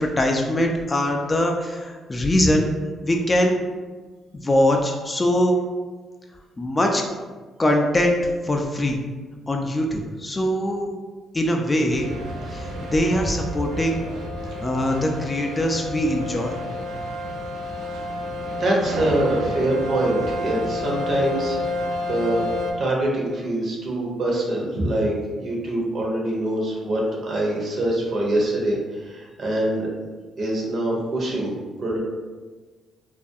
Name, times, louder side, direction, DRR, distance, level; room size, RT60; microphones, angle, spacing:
voice 1, 0.0-2.7 3.0-3.6 4.4-5.6 6.6-7.0 7.6-8.2 8.4-9.0 9.5-10.9 11.3-12.1 12.5-14.0 14.6-16.6, left 1 dB, 20° left, 2 dB, 0.3 m, -22 dB
sound 1, 11.9-22.7, left 1 dB, 90° right, 0.3 m, -30 dB
voice 2, 18.5-22.5 22.8-29.9 30.4-31.5 31.8-32.0, right 1 dB, 50° right, -2 dB, 0.7 m, -24 dB
2.4 x 2.2 x 2.6 m, 1.4 s
cardioid pair, 90°, 0 cm